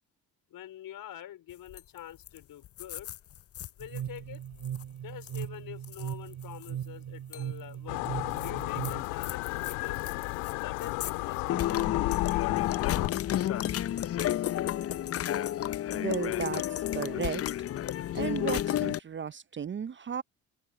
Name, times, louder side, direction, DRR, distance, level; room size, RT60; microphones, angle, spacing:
voice 1, 0.5-3.1 3.8-4.4 5.0-10.0 10.6-13.2, left 11 dB, 65° left, 4.8 m, -46 dB
sound 1, 1.7-2.0 2.3-2.4 2.6-4.0 4.5-4.8 5.2-5.4 5.8-6.7 7.3-7.4 8.4-10.5 10.8-11.1 11.5-19.0, left 12 dB, 40° left, 0.5 m, -31 dB
sound 2, 3.8-9.0, right 10 dB, 60° right, 5.6 m, -38 dB
sound 3, 7.9-13.1, left 27 dB, 85° left, 2.7 m, -32 dB
voice 2, 15.9-16.6 16.9-17.4 18.1-20.2, right 7 dB, 30° right, 0.7 m, -34 dB
open air
hypercardioid pair, 60°, 38 cm